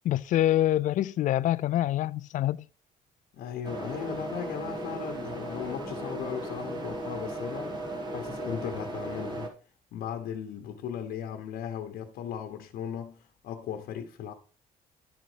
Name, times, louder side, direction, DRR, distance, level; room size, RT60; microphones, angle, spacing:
voice 1, 0.0-2.7, left 13 dB, 60° left, 0.4 m, -25 dB
voice 2, 3.3-7.9 8.1-9.5 9.9-14.3, left 8 dB, 85° left, 1.0 m, -37 dB
sound 1, 3.6-9.5, right 1 dB, 30° right, 2.0 m, -36 dB
11.5 x 4.0 x 4.9 m
cardioid pair, 140°, 15 cm